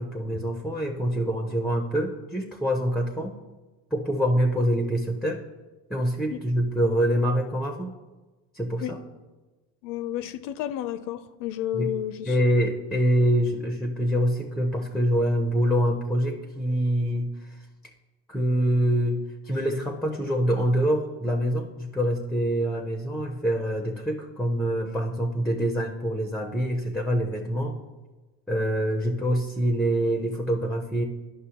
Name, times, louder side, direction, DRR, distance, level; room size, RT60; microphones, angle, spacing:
voice 1, 0.0-3.3 3.9-5.4 5.9-7.9 8.5-9.0 11.7-11.9 12.3-17.3 18.3-27.8 28.5-31.0, equal, ahead, 0.4 m, -25 dB
voice 2, 9.8-12.4, left 12 dB, 60° left, 0.5 m, -31 dB
11.0 x 5.6 x 2.8 m
cardioid pair, 125°, 37 cm